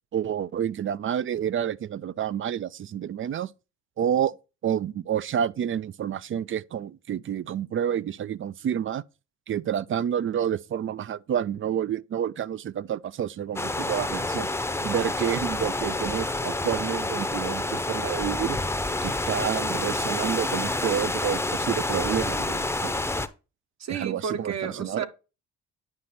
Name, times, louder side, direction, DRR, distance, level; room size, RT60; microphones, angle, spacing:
voice 1, 0.1-3.5 4.0-4.3 4.6-9.0 9.5-14.5 14.8-18.6 19.0-23.1 23.9-25.1, right 9 dB, 45° right, 0.4 m, -29 dB
sound 1, 13.6-23.3, left 2 dB, 10° left, 0.7 m, -28 dB
voice 2, 23.8-25.1, right 7 dB, 60° right, 1.3 m, -32 dB
9.5 x 5.1 x 4.2 m
cardioid pair, 90°, 30 cm